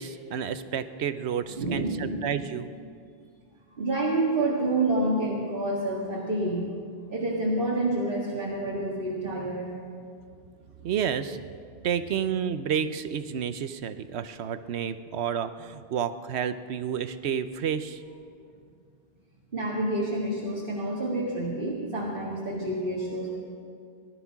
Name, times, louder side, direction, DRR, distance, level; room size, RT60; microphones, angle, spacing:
voice 1, 0.0-2.7 10.8-11.4 11.8-18.0, right 8 dB, 90° right, 11 dB, 1.0 m, -30 dB
voice 2, 1.5-2.3 3.8-6.7 7.1-9.7 19.5-23.4, right 2 dB, 55° right, -6 dB, 2.1 m, -28 dB
18.5 x 12.5 x 5.9 m, 2.3 s
omnidirectional pair, 1.1 m